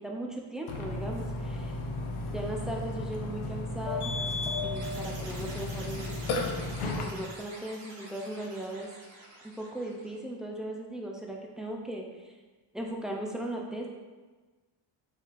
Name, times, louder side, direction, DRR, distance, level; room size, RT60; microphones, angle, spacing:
voice 1, 0.0-1.8 2.3-4.1 4.6-6.1 6.8-8.9 9.4-12.3 12.7-13.9, right 1 dB, ahead, -1 dB, 0.4 m, -38 dB
Burping eructation, 0.7-7.0, left 2 dB, 75° left, 0.7 m, -34 dB
sound 1, 4.7-10.2, right 2 dB, 60° right, 1.1 m, -48 dB
4.4 x 3.2 x 2.4 m, 1.3 s
cardioid pair, 95°, 50 cm